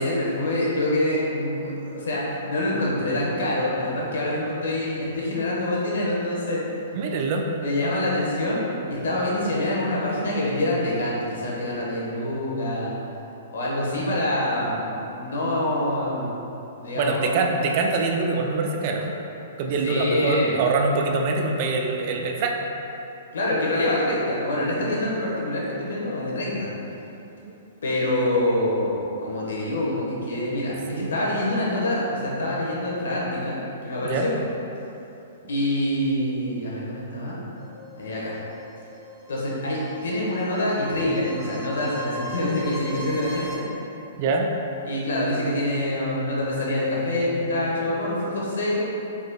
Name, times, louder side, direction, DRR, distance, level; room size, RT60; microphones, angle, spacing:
voice 1, 0.0-6.6 7.4-8.6 8.9-13.0 13.5-16.3 16.8-17.4 19.8-20.6 23.3-26.7 27.8-33.6 33.8-34.3 35.5-37.4 38.0-38.4 39.3-43.6 44.8-48.8, left 1 dB, 80° left, -5 dB, 1.2 m, -26 dB
voice 2, 6.9-7.4 17.0-19.1 19.6-22.6 27.5-27.6 30.9-31.1 34.0-34.3 44.2-44.5, right 3 dB, 45° right, 2 dB, 0.4 m, -24 dB
sound 1, 37.5-43.5, equal, 15° right, 1.0 m, -41 dB
4.9 x 4.1 x 2.2 m, 3.0 s
hypercardioid pair, 145°, 0 cm